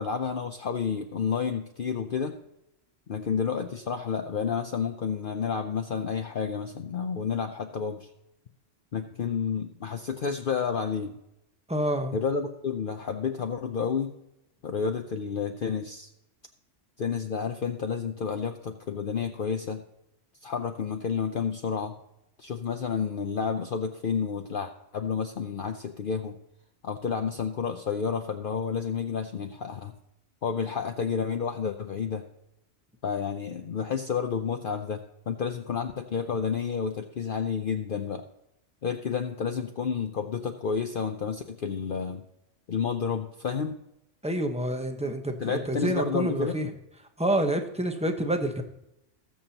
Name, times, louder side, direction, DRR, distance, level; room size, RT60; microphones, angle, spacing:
voice 1, 0.0-2.3 3.1-8.1 8.9-11.2 12.1-14.1 14.6-16.1 17.0-19.8 20.4-21.9 22.4-26.4 26.8-29.9 30.4-32.3 33.0-38.2 38.8-42.2 42.7-43.8 45.4-46.5, left 6 dB, 50° left, 5 dB, 0.8 m, -30 dB
voice 2, 11.7-12.2 44.2-46.7 47.2-48.6, right 1 dB, 5° right, 5 dB, 0.9 m, -28 dB
19.5 x 7.2 x 2.9 m, 0.85 s
omnidirectional pair, 1.3 m